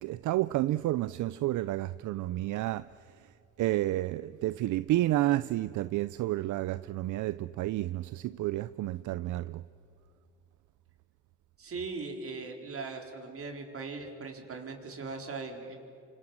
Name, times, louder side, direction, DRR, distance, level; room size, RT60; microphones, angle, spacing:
voice 1, 0.0-2.9 3.6-9.6, right 15 dB, 75° right, 0.6 m, -30 dB
voice 2, 11.6-15.8, right 4 dB, 50° right, 4.5 m, -39 dB
29.0 x 25.5 x 7.4 m
cardioid pair, 90°, 30 cm